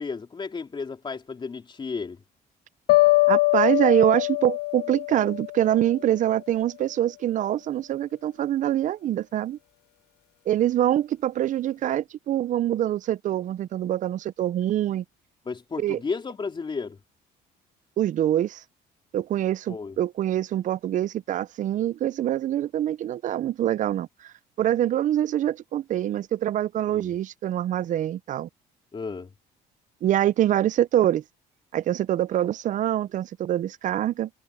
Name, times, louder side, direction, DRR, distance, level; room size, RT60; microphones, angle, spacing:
voice 1, 0.0-2.2 15.5-17.0 19.7-20.0 26.9-27.1 28.9-29.3, left 4 dB, 30° left, 3.5 m, -33 dB
sound 1, 2.9-6.0, left 21 dB, 80° left, 0.8 m, -22 dB
voice 2, 3.3-9.6 10.5-15.0 15.8-16.0 18.0-18.6 19.1-28.5 30.0-31.2 31.7-34.3, right 12 dB, 50° right, 0.5 m, -25 dB
cardioid pair, 110°, 17 cm